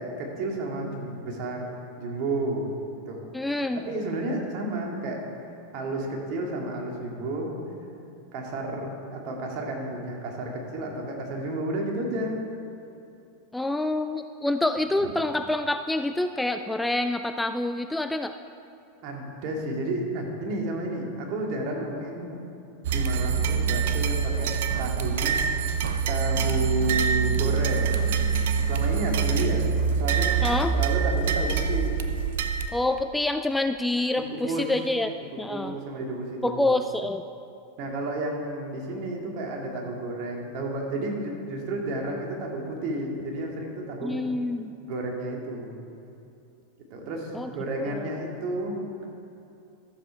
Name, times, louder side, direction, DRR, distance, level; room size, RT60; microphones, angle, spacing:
voice 1, 0.0-2.7 3.1-3.3 3.7-5.2 5.7-7.5 8.3-12.4 15.0-15.1 19.0-22.4 22.9-25.4 26.1-28.2 28.7-29.7 30.0-30.4 30.7-31.9 34.2-34.7 35.5-36.7 37.8-44.2 44.9-45.7 46.9-49.1, right 2 dB, 50° right, 0 dB, 2.2 m, -31 dB
voice 2, 3.3-3.8 13.5-18.3 30.4-30.7 32.7-35.1 35.4-35.8 36.4-37.2 44.0-44.7 47.3-47.5 47.9-48.1, left 2 dB, 5° left, 9 dB, 0.4 m, -27 dB
sound 1, 22.8-32.7, right 6 dB, 65° right, 0.6 m, -25 dB
13.5 x 7.4 x 4.6 m, 2.7 s
hypercardioid pair, 95°, 0 cm